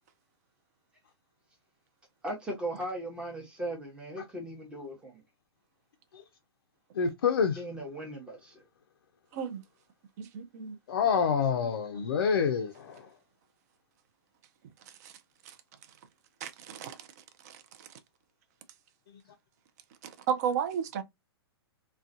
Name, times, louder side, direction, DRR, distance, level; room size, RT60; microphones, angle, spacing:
voice 1, 2.2-5.2 7.6-8.6, right 1 dB, 5° right, 0.7 m, -38 dB
voice 2, 6.9-7.6 10.9-13.1, left 6 dB, 55° left, 0.4 m, -27 dB
voice 3, 10.2-10.8 15.0-15.1 16.4-17.0 17.4-17.6 20.3-21.0, right 8 dB, 40° right, 0.4 m, -32 dB
2.3 x 2.2 x 2.4 m
figure-of-eight pair, 115°, 13 cm